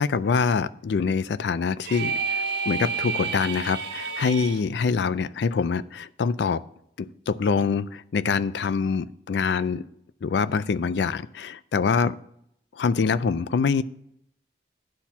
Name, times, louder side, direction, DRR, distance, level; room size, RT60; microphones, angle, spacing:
voice 1, 0.0-6.6 7.0-9.8 10.2-12.2 12.8-13.8, left 5 dB, 70° left, 16 dB, 0.4 m, -25 dB
sound 1, 1.8-4.6, right 5 dB, 70° right, 1.2 m, -29 dB
9.9 x 4.3 x 7.1 m, 0.73 s
head